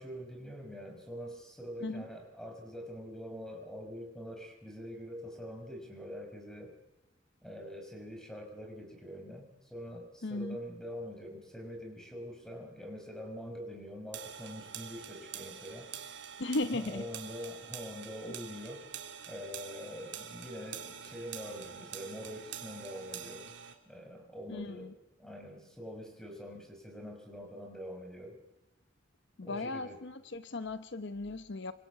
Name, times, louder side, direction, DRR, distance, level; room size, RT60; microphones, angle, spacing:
voice 1, 0.0-6.7 7.4-15.9 16.6-18.8 19.3-23.5 23.9-24.9 25.2-28.4 29.4-30.0, equal, 5° left, 3 dB, 5.3 m, -44 dB
voice 2, 10.2-10.6 16.4-17.1 24.5-24.9 29.4-31.7, left 2 dB, 65° left, 12 dB, 0.9 m, -36 dB
sound 1, 14.1-23.7, right 8 dB, 65° right, 2.6 m, -46 dB
26.5 x 24.0 x 8.3 m, 0.95 s
head